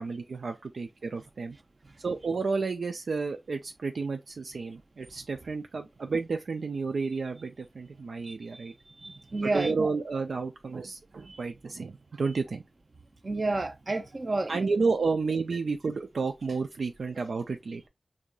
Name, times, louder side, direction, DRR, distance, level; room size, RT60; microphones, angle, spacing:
voice 1, 0.0-1.6 2.0-8.7 9.4-12.6 14.5-17.9, right 4 dB, 85° right, 0.3 m, -31 dB
voice 2, 8.2-8.7 9.0-9.9 11.2-11.4 13.2-14.7, right 2 dB, 50° right, 0.7 m, -31 dB
4.6 x 2.7 x 2.2 m
cardioid pair, 45°, 0 cm